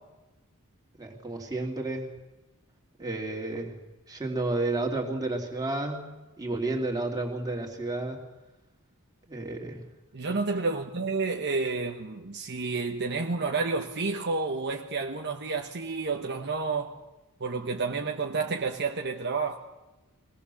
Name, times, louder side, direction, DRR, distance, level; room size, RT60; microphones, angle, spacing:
voice 1, 1.0-2.1 3.0-3.8 4.1-6.1 6.4-8.2 9.3-9.8, right 2 dB, 15° right, 3.0 m, -31 dB
voice 2, 10.1-17.0 17.4-19.6, right 4 dB, 50° right, 1.1 m, -30 dB
23.0 x 17.5 x 7.1 m
head